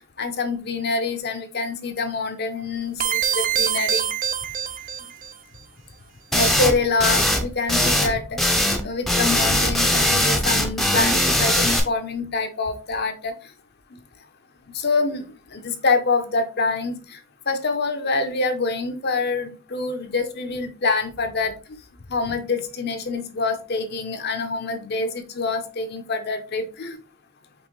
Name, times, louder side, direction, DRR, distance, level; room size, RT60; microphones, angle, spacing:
voice 1, 0.2-4.1 6.3-8.4 8.8-13.3 14.7-15.2 15.5-17.0 17.5-21.5 22.1-27.0, left 3 dB, 55° left, 7 dB, 0.7 m, -25 dB
sound 1, 3.0-5.3, right 9 dB, 45° right, 0.5 m, -24 dB
sound 2, 6.3-6.7 7.0-7.4 7.7-8.8 9.1-11.8, equal, ahead, 0.6 m, -20 dB
5.4 x 3.1 x 3.1 m, 0.34 s
head